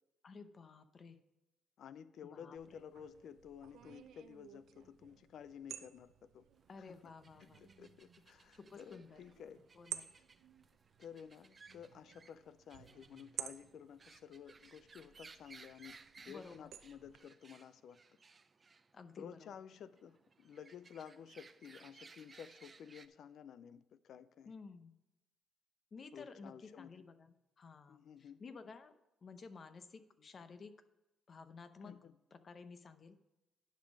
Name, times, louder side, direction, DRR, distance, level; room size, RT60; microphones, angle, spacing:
voice 1, 0.2-1.2 2.2-2.8 6.7-7.7 8.5-9.2 9.7-10.0 16.3-16.7 18.9-19.5 24.5-25.0 25.9-30.7 31.3-31.9 32.3-33.2, left 4 dB, 45° left, 11 dB, 0.7 m, -54 dB
voice 2, 1.8-6.5 6.8-7.1 7.4-9.6 11.0-18.0 19.2-24.5 26.1-26.9 27.9-28.4 31.8-32.1, left 8 dB, 70° left, 15 dB, 0.4 m, -53 dB
sound 1, 2.6-17.2, right 10 dB, 75° right, 0.6 m, -53 dB
sound 2, 6.6-23.1, right 4 dB, 35° right, 0.5 m, -62 dB
10.0 x 5.3 x 5.3 m, 0.96 s
cardioid pair, 90°, 0 cm